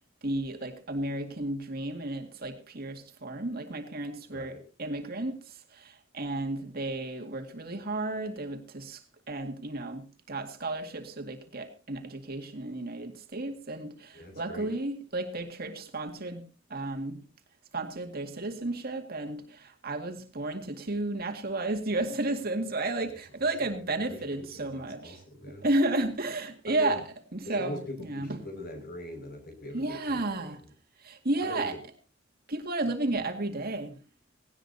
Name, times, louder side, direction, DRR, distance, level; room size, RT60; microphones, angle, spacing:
voice 1, 0.2-9.0 9.3-17.2 17.7-25.2 25.5-27.0 27.3-28.4 29.7-30.6 31.0-31.8 32.5-34.0, right 2 dB, 50° right, 2.1 m, -33 dB
voice 2, 4.3-4.6 14.1-14.7 23.6-25.7 26.7-27.0 27.4-30.5 31.4-31.8, left 1 dB, 50° left, 6.0 m, -41 dB
18.0 x 17.5 x 2.8 m
head